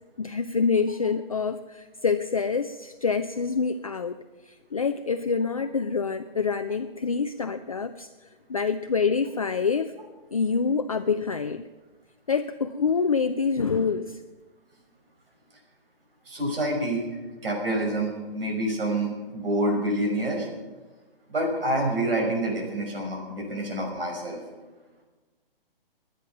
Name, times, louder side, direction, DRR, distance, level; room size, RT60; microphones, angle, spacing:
voice 1, 0.2-4.2 4.7-8.1 8.5-9.9 10.3-11.7 12.3-14.2, left 5 dB, 40° left, 8 dB, 0.4 m, -26 dB
voice 2, 16.3-17.0 17.4-20.5 21.3-24.4, right 1 dB, 75° right, 0 dB, 6.2 m, -27 dB
21.0 x 10.0 x 5.9 m, 1.2 s
hypercardioid pair, 175°, 29 cm